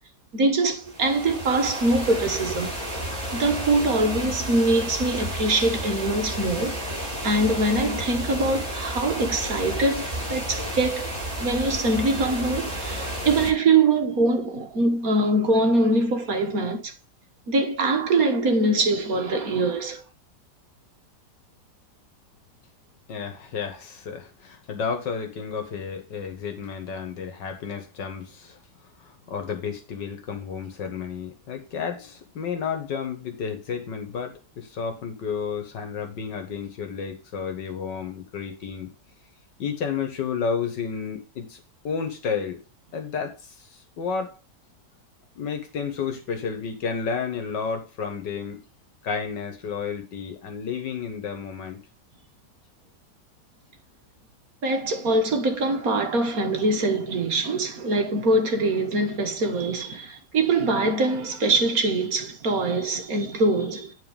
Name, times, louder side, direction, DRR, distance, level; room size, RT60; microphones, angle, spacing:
voice 1, 0.3-3.1 3.3-6.8 7.2-16.9 17.5-20.0 54.6-63.9, right 2 dB, 55° right, 1.9 m, -23 dB
sound 1, 0.8-13.5, right 1 dB, 15° right, 5.4 m, -32 dB
voice 2, 23.1-28.6 29.0-38.9 39.6-42.6 42.9-44.4 45.4-48.6 49.0-51.8, left 6 dB, 85° left, 2.2 m, -31 dB
9.3 x 4.6 x 5.0 m
omnidirectional pair, 1.8 m